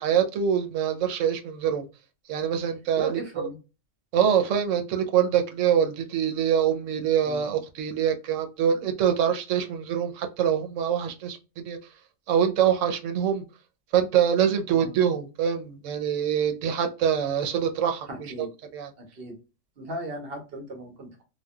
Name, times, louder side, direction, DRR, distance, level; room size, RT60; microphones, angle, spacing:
voice 1, 0.0-1.9 2.3-3.2 4.1-11.4 11.6-11.8 12.3-13.4 13.9-18.5 18.7-18.9, right 8 dB, 90° right, 7 dB, 1.0 m, -24 dB
voice 2, 3.0-3.6 7.2-7.5 14.7-15.0 18.1-18.5 19.0-19.4 19.8-21.2, right 1 dB, 55° right, 3 dB, 1.1 m, -37 dB
3.3 x 2.2 x 2.2 m, 0.30 s
omnidirectional pair, 1.3 m